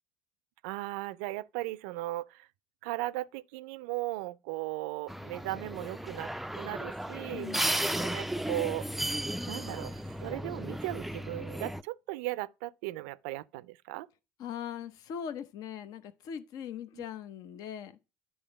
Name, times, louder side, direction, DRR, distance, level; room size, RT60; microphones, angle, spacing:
voice 1, 0.6-2.5 2.8-7.5 8.0-8.9 9.5-14.1 16.9-17.0, right 18 dB, 75° right, 0.4 m, -37 dB
sound 1, 5.1-11.8, right 1 dB, 5° right, 0.3 m, -35 dB
voice 2, 7.3-7.8 14.4-18.0, left 8 dB, 60° left, 0.6 m, -40 dB
10.0 x 3.6 x 5.0 m
hypercardioid pair, 65°, 7 cm